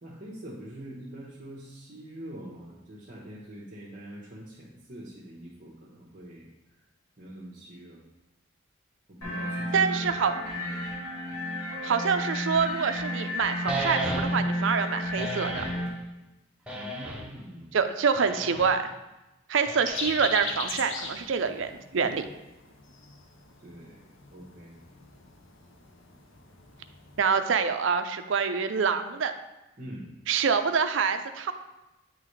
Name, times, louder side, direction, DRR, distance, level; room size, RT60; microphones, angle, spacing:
voice 1, 0.0-6.5 6.8-6.9 7.2-8.0 9.1-10.8 16.7-17.8 23.6-24.8 29.8-30.1, right 1 dB, 40° right, -7 dB, 1.0 m, -44 dB
sound 1, 9.2-15.9, equal, 85° left, 1.6 m, -32 dB
voice 2, 9.7-10.3 11.8-15.6 17.7-18.9 19.5-22.3 27.2-29.3 30.3-31.5, right 6 dB, 70° right, 9 dB, 0.4 m, -26 dB
sound 2, 13.7-14.6 15.2-15.9 16.7-17.4 18.2-18.8 19.7-20.4, right 1 dB, 5° right, 0.5 m, -34 dB
sound 3, 19.9-27.2, left 4 dB, 70° left, 0.7 m, -40 dB
9.0 x 3.9 x 3.2 m, 1.0 s
head